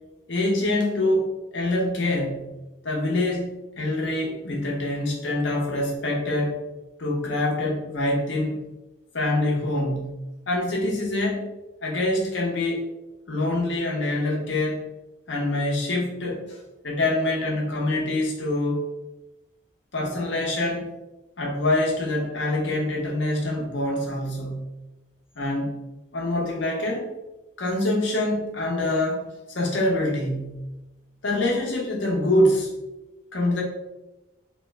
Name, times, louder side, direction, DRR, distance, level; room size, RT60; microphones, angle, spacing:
voice 1, 0.3-2.5 2.8-6.6 7.0-8.6 9.1-10.2 10.5-11.4 11.8-12.8 13.3-14.9 15.3-18.8 19.9-20.9 21.4-24.6 25.4-25.7 26.1-27.1 27.6-30.7 31.2-32.7 33.3-33.6, left 1 dB, 65° left, -2 dB, 0.8 m, -25 dB
3.1 x 2.1 x 3.2 m, 1.0 s
head